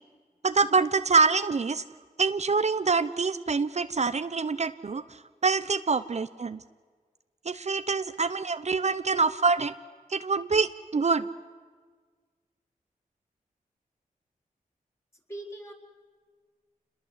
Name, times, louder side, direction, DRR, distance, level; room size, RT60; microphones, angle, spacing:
voice 1, 0.4-1.8 2.2-6.6 7.4-9.7 10.1-11.3, right 4 dB, 50° right, 12 dB, 0.7 m, -25 dB
voice 2, 15.3-15.7, right 1 dB, 20° left, 1 dB, 4.3 m, -41 dB
28.0 x 21.5 x 8.1 m, 1.5 s
wide cardioid pair, 70°, 15 cm